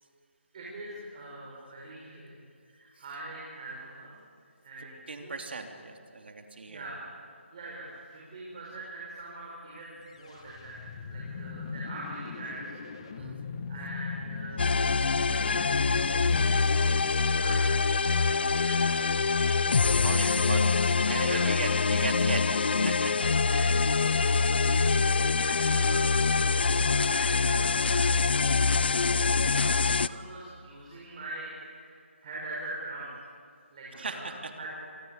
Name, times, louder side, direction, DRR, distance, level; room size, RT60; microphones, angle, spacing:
voice 1, 0.5-4.1 4.6-5.3 6.7-7.0 7.5-10.8 11.1-12.6 13.7-15.7 17.1-19.0 20.1-20.4 21.2-21.4 21.8-22.0 23.5-24.0 24.6-28.1 28.8-33.1 33.7-34.3 34.6-34.7, right 2 dB, 30° right, -5 dB, 5.7 m, -43 dB
voice 2, 4.8-6.9 13.1-13.5 16.1-16.5 19.9-22.4 22.8-23.3 24.2-24.4 33.9-34.5, right 3 dB, 55° right, 4 dB, 3.1 m, -38 dB
sound 1, 9.9-18.1, left 5 dB, 25° left, 1.6 m, -40 dB
sound 2, 14.6-30.1, left 4 dB, 50° left, 0.7 m, -25 dB
27.0 x 22.0 x 8.3 m, 2.3 s
figure-of-eight pair, 170°, 7 cm